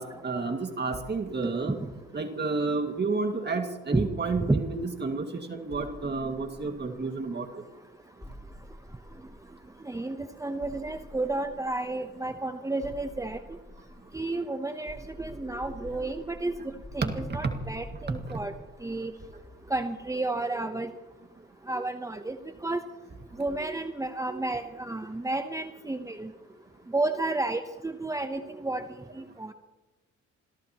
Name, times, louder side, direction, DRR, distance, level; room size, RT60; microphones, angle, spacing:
voice 1, 0.0-1.8 2.1-7.5 16.0-16.1 17.0-17.5 18.3-18.4 24.3-24.4, right 4 dB, 35° right, 4 dB, 2.2 m, -31 dB
sound 1, 5.7-7.2 8.2-9.8 10.6-12.0 12.8-14.4 14.9-20.1, equal, 20° left, 4.9 m, -47 dB
voice 2, 9.8-13.4 14.1-18.5 18.8-19.1 19.7-20.9 21.7-22.4 22.6-22.8 23.4-26.3 26.9-28.8 29.1-29.5, right 2 dB, 10° right, 7 dB, 0.9 m, -31 dB
28.0 x 17.0 x 3.0 m, 1.1 s
cardioid pair, 90°, 30 cm